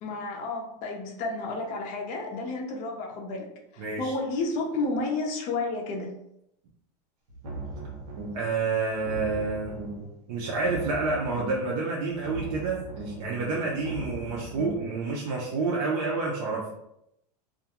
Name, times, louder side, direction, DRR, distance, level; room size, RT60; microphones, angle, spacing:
voice 1, 0.0-3.5 3.7-6.1, left 3 dB, 40° left, 1 dB, 0.6 m, -31 dB
voice 2, 3.8-4.1 8.3-9.7 10.3-16.7, right 3 dB, 60° right, -3 dB, 0.6 m, -29 dB
sound 1, 7.3-8.6 8.9-10.2 10.5-11.8 12.1-14.9, right 2 dB, 75° right, 0.9 m, -38 dB
2.4 x 2.1 x 2.9 m, 0.80 s
supercardioid pair, 145°, 21 cm